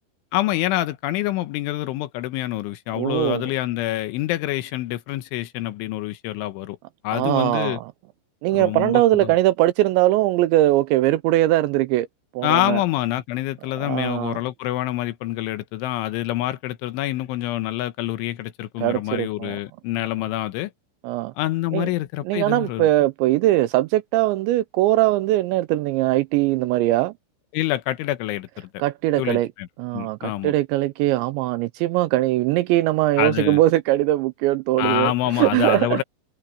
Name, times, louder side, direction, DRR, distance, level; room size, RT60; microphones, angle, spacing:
voice 1, 0.3-6.8 7.0-7.8 8.5-9.3 12.4-20.7 21.4-22.9 27.5-28.7 29.2-29.7 29.9-30.5 33.2-33.6 34.8-36.0, left 15 dB, 80° left, 3.3 m, -26 dB
voice 2, 2.9-3.5 7.1-7.9 8.4-12.1 12.3-12.8 13.8-14.4 18.8-19.6 21.0-21.3 21.7-21.9 22.2-27.1 28.8-29.5 29.8-36.0, right 16 dB, 85° right, 2.7 m, -21 dB
omnidirectional pair, 5.7 m